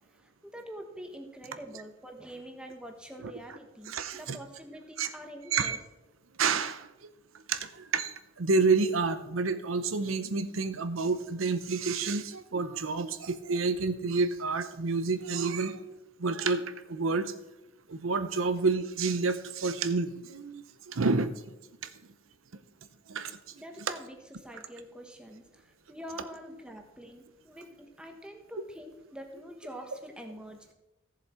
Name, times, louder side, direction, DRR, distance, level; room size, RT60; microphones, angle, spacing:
voice 1, 0.0-5.8 23.6-30.7, equal, 5° right, 3 dB, 1.3 m, -45 dB
voice 2, 3.9-4.4 5.0-5.1 5.5-5.8 6.4-6.9 7.5-16.6 16.9-17.3 17.9-21.4 23.1-23.3, right 4 dB, 90° right, 11 dB, 0.7 m, -29 dB
15.0 x 7.1 x 4.4 m, 0.97 s
head